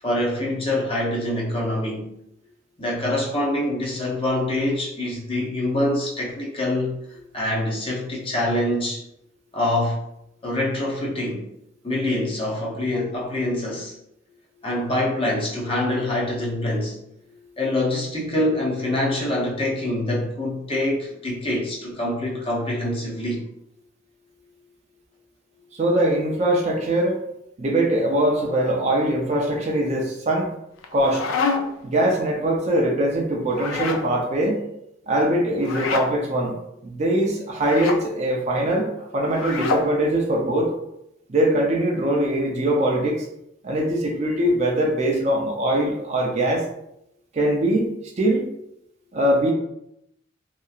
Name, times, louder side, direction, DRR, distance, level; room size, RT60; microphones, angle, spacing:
voice 1, 0.0-2.1 2.8-7.0 7.3-9.0 9.5-10.0 10.4-11.5 11.8-13.9 14.6-17.0 17.6-23.4, left 1 dB, 25° left, -3 dB, 0.6 m, -25 dB
voice 2, 25.7-27.2 27.6-30.5 30.9-31.2 31.8-34.6 35.1-36.5 36.8-40.7 41.3-43.2 43.6-46.6 47.3-47.9 48.2-48.4 49.1-49.5, right 1 dB, 35° right, -1 dB, 0.4 m, -22 dB
sound 1, 30.8-31.9 33.5-34.1 35.6-36.1 37.6-38.0 39.3-39.9, left 4 dB, 85° left, 0.4 m, -27 dB
2.8 x 2.3 x 2.3 m, 0.80 s
head